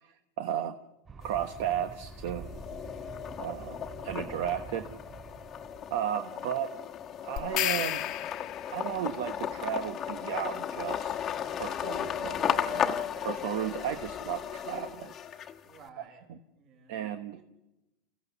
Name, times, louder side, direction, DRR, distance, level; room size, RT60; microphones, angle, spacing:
voice 1, 0.0-0.8 1.2-2.5 3.4-4.8 5.9-6.7 7.2-8.0 8.7-11.1 11.5-15.1 16.3-16.4 16.9-17.4, right 10 dB, 70° right, 8 dB, 1.0 m, -34 dB
sound 1, 1.1-6.0, right 4 dB, 20° right, 3.9 m, -47 dB
sound 2, 1.2-1.9 2.3-15.8, left 9 dB, 30° left, 1.2 m, -35 dB
voice 2, 4.5-4.9 6.3-6.8 15.6-16.3 16.5-16.9 17.3-17.4, right 5 dB, 45° right, 3 dB, 5.2 m, -55 dB
sound 3, 7.4-8.9, left 14 dB, 45° left, 1.1 m, -32 dB
30.0 x 15.5 x 6.9 m, 0.97 s
supercardioid pair, 155°, 0 cm